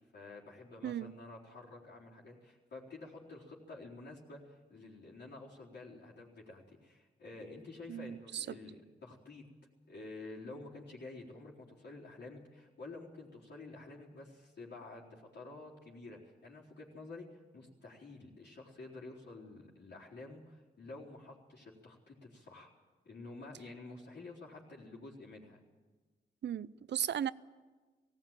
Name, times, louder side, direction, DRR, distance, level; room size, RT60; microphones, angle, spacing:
voice 1, 0.1-9.5 9.9-22.7 23.0-25.6, left 2 dB, 70° left, -5 dB, 4.1 m, -50 dB
voice 2, 7.9-8.6 26.4-27.3, right 9 dB, 75° right, 18 dB, 0.6 m, -36 dB
18.5 x 17.5 x 9.1 m, 1.3 s
wide cardioid pair, 105°, 18 cm